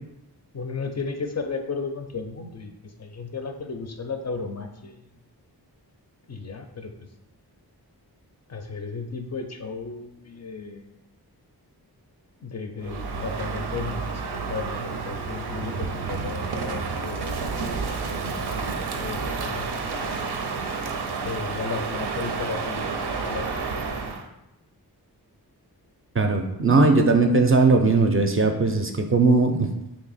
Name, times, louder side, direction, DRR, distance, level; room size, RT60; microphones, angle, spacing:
voice 1, 0.5-5.0 6.3-6.9 8.5-10.9 12.4-20.3 21.2-23.8, left 4 dB, 45° left, 5 dB, 0.4 m, -35 dB
Crow, 12.8-24.3, right 4 dB, 90° right, 0.5 m, -30 dB
voice 2, 26.1-29.7, right 3 dB, 35° right, 4 dB, 0.4 m, -19 dB
2.8 x 2.7 x 4.0 m, 0.87 s
wide cardioid pair, 60°, 39 cm